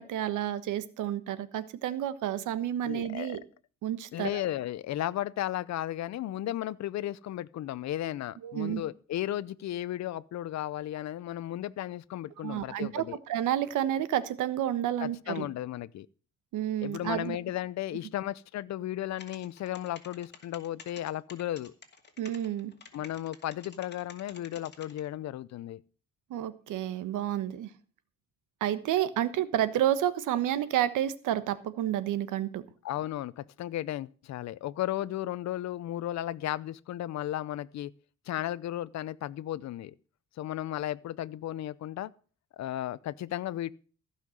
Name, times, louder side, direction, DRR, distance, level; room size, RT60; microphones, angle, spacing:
voice 1, 0.0-3.4 3.8-4.4 8.4-8.8 12.4-15.5 16.5-17.4 22.2-22.7 26.3-27.7 28.6-32.6, right 11 dB, 85° right, 1.2 m, -30 dB
voice 2, 2.8-3.4 4.1-13.2 15.0-16.1 16.8-21.7 22.9-25.8 32.8-37.9 38.3-39.9 40.4-42.1 42.5-43.7, left 13 dB, 65° left, 0.7 m, -34 dB
sound 1, 19.1-25.0, left 5 dB, 35° left, 2.2 m, -49 dB
15.0 x 5.7 x 7.7 m
cardioid pair, 90°, 30 cm